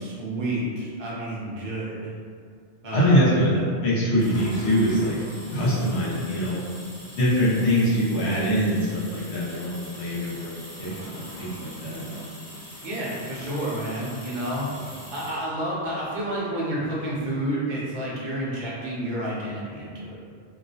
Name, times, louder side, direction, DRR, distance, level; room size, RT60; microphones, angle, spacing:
voice 1, 0.0-2.1 2.8-3.2 12.8-14.7 15.1-20.2, right 1 dB, 50° right, -6 dB, 0.6 m, -30 dB
voice 2, 2.9-3.5 3.8-5.2 5.5-6.6 7.1-12.0, equal, 70° left, -7 dB, 0.9 m, -23 dB
sound 1, 4.2-15.5, equal, 45° left, 1.1 m, -42 dB
2.4 x 2.0 x 2.6 m, 2.1 s
omnidirectional pair, 1.2 m